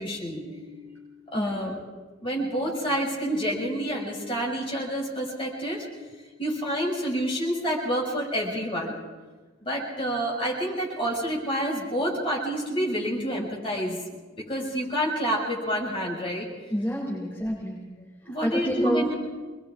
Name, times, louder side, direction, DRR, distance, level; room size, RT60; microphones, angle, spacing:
voice 1, 0.0-1.8 2.2-5.8 6.4-8.9 9.6-14.2 14.5-16.5 18.3-19.1, equal, 30° left, -3 dB, 6.1 m, -28 dB
voice 2, 16.7-17.8 18.4-19.0, equal, 10° left, -6 dB, 3.5 m, -28 dB
26.5 x 21.5 x 4.8 m, 1.3 s
head